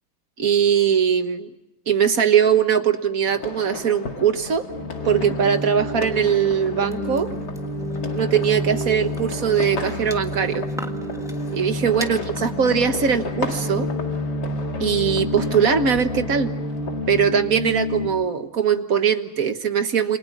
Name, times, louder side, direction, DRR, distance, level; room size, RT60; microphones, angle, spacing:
voice 1, 0.4-1.5 1.9-4.7 5.0-7.3 8.1-10.7 11.5-13.9 14.8-16.5 17.1-20.2, right 7 dB, 50° right, 9 dB, 1.6 m, -21 dB
sound 1, 3.3-17.3, left 4 dB, 60° left, 2.6 m, -35 dB
sound 2, 4.7-18.1, left 1 dB, 30° left, 7.0 m, -29 dB
sound 3, 6.9-12.2, equal, ahead, 1.5 m, -41 dB
29.0 x 25.5 x 6.0 m, 0.85 s
omnidirectional pair, 2.1 m